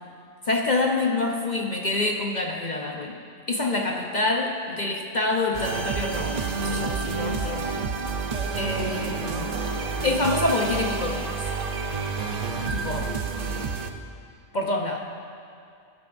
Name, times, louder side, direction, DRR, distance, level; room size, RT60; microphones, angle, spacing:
voice 1, 0.5-3.2 3.5-6.3 6.6-7.9 8.5-9.6 10.0-11.3 12.7-13.1 14.5-15.0, left 2 dB, 40° left, 1 dB, 0.7 m, -26 dB
Circuit Synthwave, 5.5-13.9, right 4 dB, 45° right, 0.5 m, -29 dB
19.0 x 11.0 x 2.6 m, 2.3 s
omnidirectional pair, 1.4 m